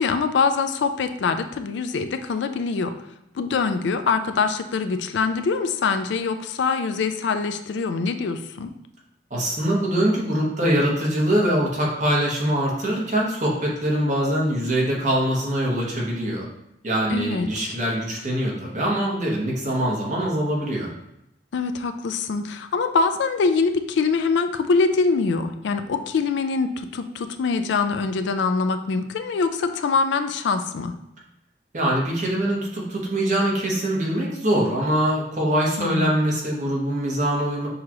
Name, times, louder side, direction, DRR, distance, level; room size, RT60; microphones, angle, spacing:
voice 1, 0.0-2.9 3.3-8.7 17.1-17.7 21.5-30.9 35.8-36.2, left 4 dB, 75° left, 8 dB, 0.3 m, -24 dB
voice 2, 9.3-16.4 16.8-20.9 31.7-37.7, right 1 dB, 40° right, -4 dB, 1.1 m, -23 dB
6.3 x 2.4 x 2.9 m, 0.85 s
head